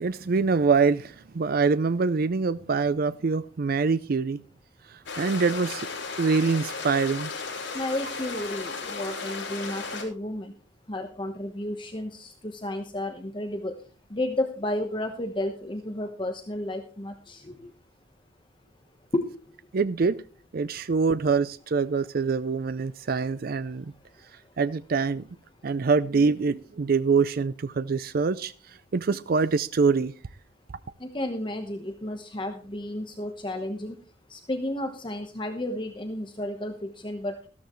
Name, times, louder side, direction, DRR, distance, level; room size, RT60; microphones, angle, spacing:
voice 1, 0.0-4.4 4.9-5.9 6.2-7.3 19.7-20.2 20.5-23.9 24.6-25.3 25.6-30.1, right 4 dB, 50° right, 0.4 m, -25 dB
sound 1, 5.1-10.0, left 4 dB, 75° left, 5.5 m, -35 dB
voice 2, 7.7-10.5 10.9-13.7 14.1-17.7 19.1-19.3 31.0-33.9 34.3-37.4, left 1 dB, 25° left, 1.1 m, -32 dB
14.0 x 13.0 x 3.1 m
head